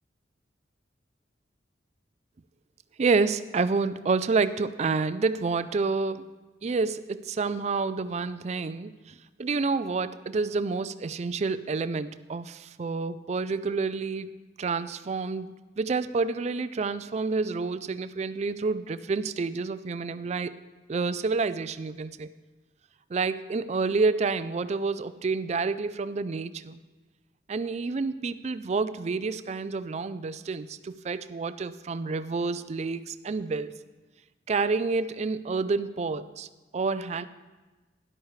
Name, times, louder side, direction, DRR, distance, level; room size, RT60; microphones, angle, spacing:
voice 1, 3.0-6.3 6.6-14.3 14.6-20.6 20.9-22.3 23.1-26.8 27.5-33.7 34.5-36.5 36.7-37.3, right 4 dB, 40° right, 13 dB, 0.4 m, -29 dB
13.0 x 11.0 x 3.2 m, 1.2 s
head